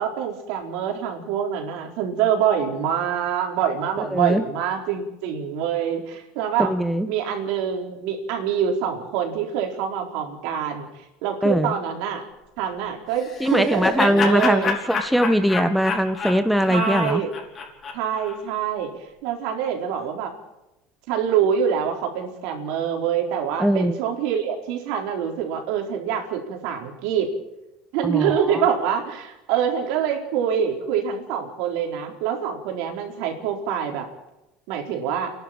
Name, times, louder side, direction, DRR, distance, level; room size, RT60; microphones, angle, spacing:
voice 1, 0.0-6.7 7.1-10.9 11.2-12.2 12.6-14.7 16.7-17.3 17.9-18.9 19.2-20.3 21.1-27.3 27.9-34.1 34.7-35.3, right 8 dB, 75° right, 2 dB, 4.3 m, -25 dB
voice 2, 4.0-4.4 6.6-7.1 11.4-11.7 13.4-17.2 23.6-23.9 28.0-28.6, equal, ahead, 9 dB, 0.9 m, -21 dB
Laughter, 13.2-18.4, left 4 dB, 35° left, 5.3 m, -28 dB
29.5 x 11.5 x 8.7 m, 0.95 s
supercardioid pair, 125°, 0 cm